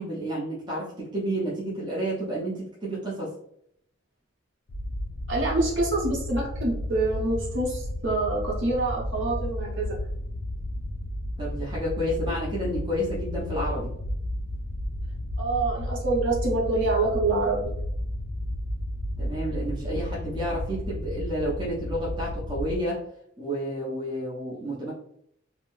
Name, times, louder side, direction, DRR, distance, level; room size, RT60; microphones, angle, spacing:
voice 1, 0.0-3.3 11.4-13.9 19.2-23.0 23.4-24.9, equal, 20° right, -6 dB, 0.6 m, -30 dB
sound 1, 4.7-22.8, left 1 dB, 55° left, 0.5 m, -32 dB
voice 2, 5.3-10.0 15.4-17.7, right 2 dB, 65° right, -3 dB, 0.9 m, -26 dB
2.6 x 2.0 x 3.0 m, 0.71 s
head